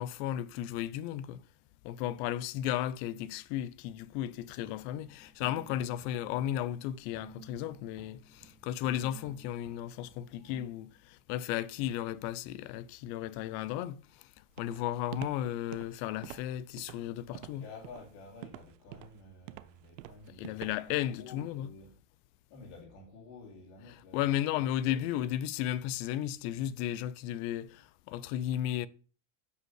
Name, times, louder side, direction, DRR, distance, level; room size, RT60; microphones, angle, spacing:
voice 1, 0.0-1.4 1.8-17.7 20.3-21.7 23.9-28.9, left 12 dB, 50° left, 0.6 m, -34 dB
sound 1, 4.6-10.7, right 6 dB, 20° right, 0.4 m, -56 dB
Walk footsteps, 14.6-21.0, right 15 dB, 85° right, 0.6 m, -47 dB
voice 2, 17.3-21.9 22.5-24.3 24.9-25.0, left 3 dB, 65° left, 2.8 m, -51 dB
5.6 x 5.5 x 6.2 m
supercardioid pair, 130°, 38 cm